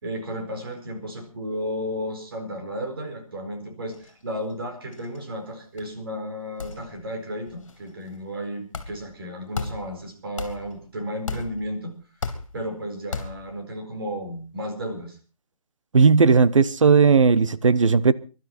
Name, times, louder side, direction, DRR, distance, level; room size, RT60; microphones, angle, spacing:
voice 1, 0.0-11.9 12.5-15.2, equal, 40° right, 4.7 m, -33 dB
sound 1, 3.9-4.2 4.5-4.6 4.9-5.5 5.8-5.9 6.6-7.1 7.5-8.1 8.7-9.1 9.5-10.0 10.4-10.8 11.3-11.8 12.2-12.7 13.1-13.5, left 4 dB, 55° left, 2.9 m, -35 dB
voice 2, 15.9-18.1, right 5 dB, 55° right, 1.0 m, -16 dB
23.5 x 12.0 x 4.3 m
hypercardioid pair, 175°, 19 cm